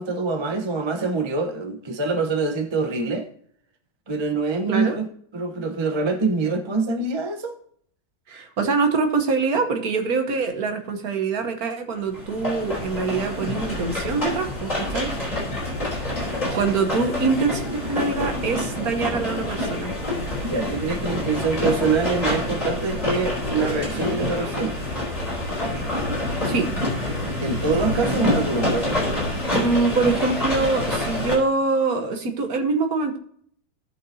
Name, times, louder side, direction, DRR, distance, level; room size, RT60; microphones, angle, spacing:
voice 1, 0.0-3.3 4.1-5.1 5.3-7.6 16.5-16.6 20.4-24.8 27.4-29.0, right 4 dB, 30° right, 0.5 m, -25 dB
voice 2, 8.3-15.1 16.5-19.9 26.4-26.7 29.5-33.2, right 4 dB, 55° right, 1.5 m, -24 dB
sound 1, 12.1-31.3, left 1 dB, 20° left, 3.5 m, -27 dB
16.5 x 5.6 x 2.8 m
omnidirectional pair, 2.1 m